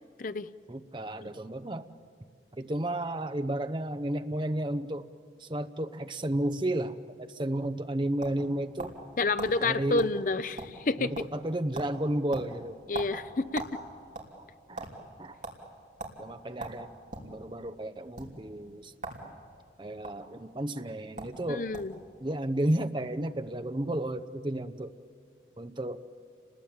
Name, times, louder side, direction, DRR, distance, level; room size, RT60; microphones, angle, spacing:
voice 1, 0.7-1.9 2.5-5.1 5.4-9.0 9.6-10.1 11.0-12.8 14.7-14.9 15.2-15.4 16.2-16.9 17.2-18.9 19.8-21.7 22.2-24.9 25.6-26.0, right 1 dB, 25° right, 9 dB, 0.8 m, -32 dB
sound 1, 7.8-9.1 9.4-9.5 10.0-10.1 10.4-10.9 11.1-11.5 11.7-11.9 12.3-13.8 14.1-14.9 15.4-15.6 16.0-16.2 16.6-17.3 18.1-18.3 19.0-19.2 19.5-20.1 20.8-20.9 21.2-21.4 21.7-22.0, right 2 dB, 45° right, 3.2 m, -39 dB
voice 2, 9.2-11.1 12.9-13.6 21.5-21.9, left 3 dB, 50° left, 13 dB, 0.6 m, -29 dB
30.0 x 20.5 x 8.8 m, 2.3 s
head